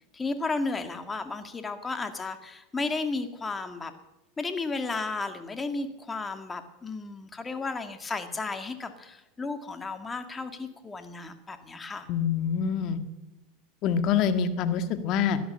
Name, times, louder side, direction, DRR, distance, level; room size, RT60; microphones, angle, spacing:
voice 1, 0.1-3.9 4.4-12.1, left 3 dB, 15° left, 7 dB, 2.0 m, -33 dB
voice 2, 12.1-13.0 13.8-15.4, left 7 dB, 50° left, 9 dB, 1.7 m, -25 dB
16.5 x 11.5 x 7.7 m, 0.98 s
hypercardioid pair, 110°, 0 cm